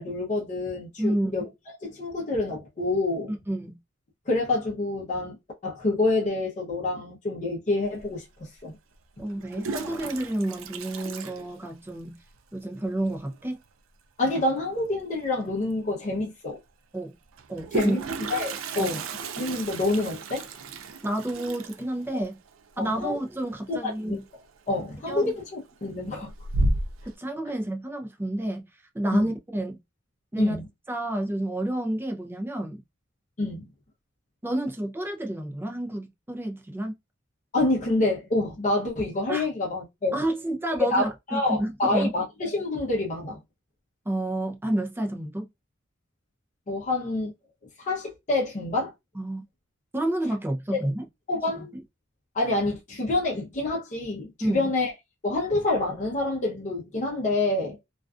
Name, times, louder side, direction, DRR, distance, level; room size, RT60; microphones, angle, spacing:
voice 1, 0.0-1.4 1.8-3.3 4.3-5.4 5.6-8.8 14.2-16.6 17.7-19.0 19.4-20.4 22.1-22.2 22.8-23.2 23.7-24.2 24.7-26.3 29.1-29.3 30.4-30.7 33.4-33.7 37.5-40.2 40.9-43.4 46.7-47.3 47.8-48.9 50.7-50.9 51.3-51.7 52.3-54.9 55.2-57.8, left 2 dB, 40° left, 0.7 m, -27 dB
voice 2, 1.0-1.4 3.3-3.8 9.2-12.2 12.5-13.6 16.9-17.1 17.5-18.0 18.8-19.0 21.0-22.4 22.8-24.2 25.1-25.3 27.2-28.7 28.9-29.8 30.3-30.6 30.9-32.8 34.4-37.0 39.3-39.5 40.1-42.1 44.1-45.5 49.1-49.4 49.9-51.0 51.6-51.7 54.4-54.7, right 1 dB, 10° right, 0.5 m, -29 dB
Toilet flush, 8.0-8.1 9.3-12.1 12.4-12.5 12.8-12.9 13.1-13.5 15.2-15.3 15.7-15.8 17.3-24.0 24.3-24.8 25.2-25.7 26.1-27.1, right 2 dB, 75° right, 0.4 m, -33 dB
2.4 x 2.3 x 2.3 m
head